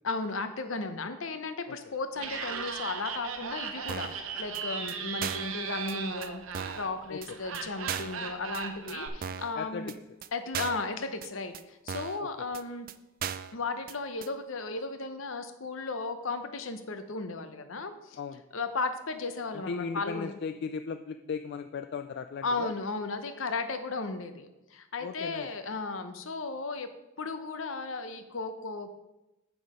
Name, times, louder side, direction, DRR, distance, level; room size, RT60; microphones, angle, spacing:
voice 1, 0.0-6.4 6.7-9.9 10.3-12.9 13.5-18.2 18.5-20.3 22.4-26.9 27.2-28.9, left 3 dB, 70° left, 9 dB, 0.8 m, -35 dB
Laughter, 2.1-9.1, right 6 dB, 80° right, 0.9 m, -37 dB
sound 1, 3.9-4.2 4.5-4.6 4.9-5.0 5.2-5.5 5.9-6.0 6.2-6.3 6.5-6.9 7.2-7.3 7.5-7.6 7.9-8.2 8.5-8.6 8.9-9.0 9.2-9.5 9.9-10.0 10.2-10.3 10.5-10.9 11.2-11.3 11.5-11.6 11.9-12.2 12.5-12.6 12.9-13.0 13.2-13.5 13.9-14.0 14.2-14.3, right 8 dB, 45° right, 0.3 m, -37 dB
voice 2, 19.5-22.7 25.0-25.5, left 5 dB, 55° left, 9 dB, 0.3 m, -37 dB
7.2 x 6.1 x 5.0 m, 0.99 s
head